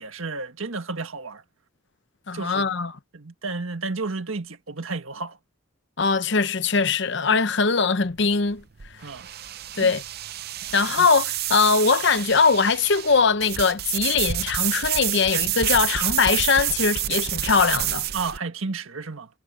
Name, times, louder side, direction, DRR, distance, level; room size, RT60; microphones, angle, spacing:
voice 1, 0.0-1.4 2.3-2.7 3.1-5.4 9.0-9.3 9.8-9.9 10.6-11.1 18.1-19.3, right 3 dB, 75° right, 1.7 m, -32 dB
voice 2, 2.3-2.9 6.0-8.6 9.8-10.0 10.7-18.1, left 5 dB, 55° left, 0.8 m, -21 dB
sound 1, 8.0-18.4, right 12 dB, 45° right, 0.6 m, -28 dB
head